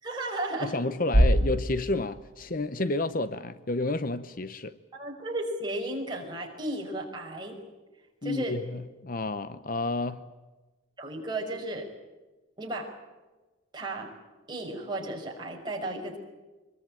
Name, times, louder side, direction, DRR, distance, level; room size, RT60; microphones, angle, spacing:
voice 1, 0.0-0.8 4.9-7.6 8.2-8.6 11.0-11.9 12.6-12.9 13.7-14.1 14.5-16.2, right 1 dB, 20° right, 5.7 m, -34 dB
voice 2, 0.6-4.8 8.2-10.3, left 2 dB, 45° left, 0.9 m, -30 dB
Bass drum, 1.1-2.8, equal, 85° right, 1.7 m, -25 dB
24.5 x 22.0 x 8.9 m
head